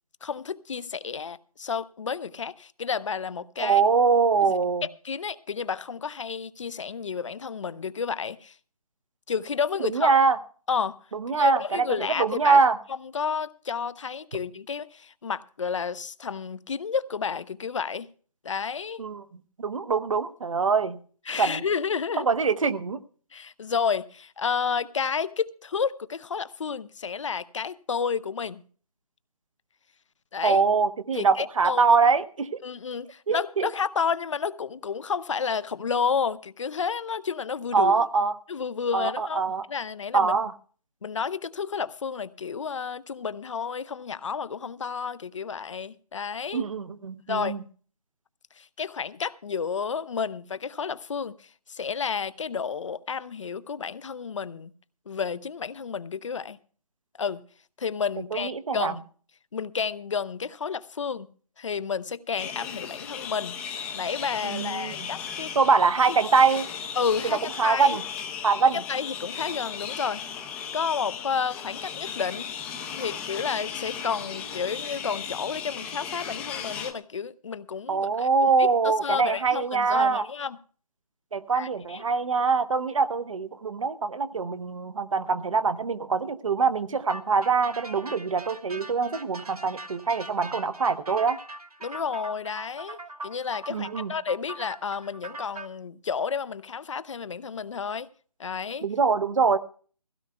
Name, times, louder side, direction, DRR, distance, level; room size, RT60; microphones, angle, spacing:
voice 1, 0.2-3.8 4.4-4.5 4.8-8.6 9.3-10.1 10.7-11.0 11.3-12.6 12.9-18.1 18.4-19.0 21.3-22.3 23.3-28.6 30.3-30.6 31.1-32.0 32.6-38.1 38.5-39.4 39.7-40.3 41.0-46.6 47.3-47.6 48.6-54.7 55.1-56.6 57.2-57.4 57.8-59.0 59.5-61.3 61.6-65.5 67.0-68.0 68.7-70.2 70.7-72.5 72.9-80.6 81.5-82.0 91.8-98.1 98.4-98.8, left 6 dB, 55° left, 0.6 m, -31 dB
voice 2, 3.6-4.8 9.9-10.4 11.1-11.9 12.2-12.8 19.0-19.2 19.6-21.0 21.4-21.6 22.3-23.0 30.4-32.6 33.3-33.7 37.7-38.3 38.9-39.6 40.1-40.5 46.5-47.6 58.3-58.9 64.5-65.1 65.5-66.6 67.6-68.0 68.4-68.8 77.9-80.2 81.3-91.4 93.7-94.1 98.8-99.6, right 5 dB, 60° right, 0.9 m, -23 dB
sound 1, 62.4-76.9, left 7 dB, 5° left, 0.6 m, -36 dB
sound 2, 87.1-95.7, right 2 dB, 80° right, 1.5 m, -41 dB
20.0 x 16.0 x 2.3 m
figure-of-eight pair, 150°, 19 cm